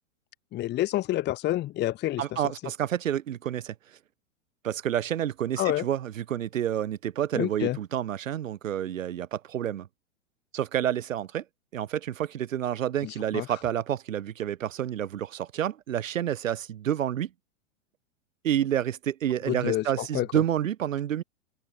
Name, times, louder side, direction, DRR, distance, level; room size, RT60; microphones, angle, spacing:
voice 1, 0.5-2.4 5.6-5.9 7.3-7.8 13.0-13.5 19.5-20.3, left 15 dB, 25° left, 1.1 m, -28 dB
voice 2, 2.2-3.7 4.6-9.9 10.5-11.4 11.7-17.3 18.4-21.2, right 10 dB, 80° right, 1.3 m, -29 dB
open air
hypercardioid pair, 115°, 39 cm